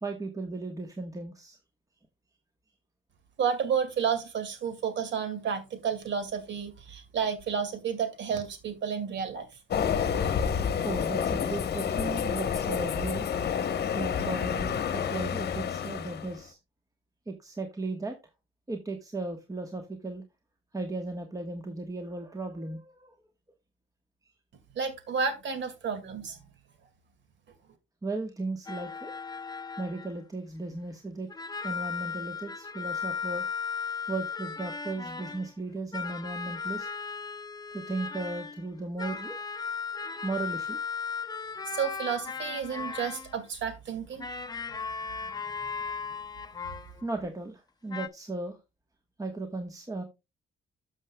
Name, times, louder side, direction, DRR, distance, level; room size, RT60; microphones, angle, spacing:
voice 1, 0.0-1.6 10.8-13.3 13.9-16.6 17.3-18.2 18.7-20.2 20.7-23.2 28.0-29.1 29.8-33.4 34.1-36.9 37.7-39.4 40.2-40.8 47.0-48.6 49.2-50.0, right 3 dB, 15° right, 1.2 m, -36 dB
voice 2, 3.4-9.5 24.8-26.4 41.7-44.2 45.2-45.3 46.1-46.2, right 7 dB, 65° right, 2.1 m, -31 dB
Train, 9.7-16.4, left 7 dB, 55° left, 0.9 m, -29 dB
sound 1, 28.7-30.1 31.3-35.5 35.9-38.7 39.0-43.4 44.1-47.0 47.9-48.1, left 5 dB, 20° left, 0.6 m, -36 dB
12.5 x 6.4 x 2.2 m
cardioid pair, 90°, 20 cm